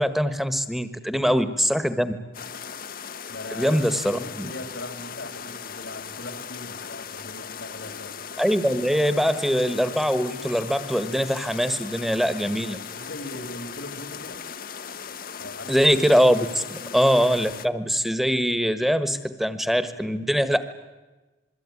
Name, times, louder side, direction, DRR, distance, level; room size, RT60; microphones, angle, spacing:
voice 1, 0.0-2.2 3.5-4.5 8.4-12.8 15.7-20.6, equal, ahead, 12 dB, 1.3 m, -22 dB
voice 2, 1.1-1.5 3.3-8.1 12.9-14.4 15.4-15.7 16.8-17.0, left 1 dB, 75° left, 6 dB, 2.5 m, -40 dB
sound 1, 2.3-17.7, left 7 dB, 45° left, 1.0 m, -38 dB
27.0 x 22.0 x 9.8 m, 1.2 s
head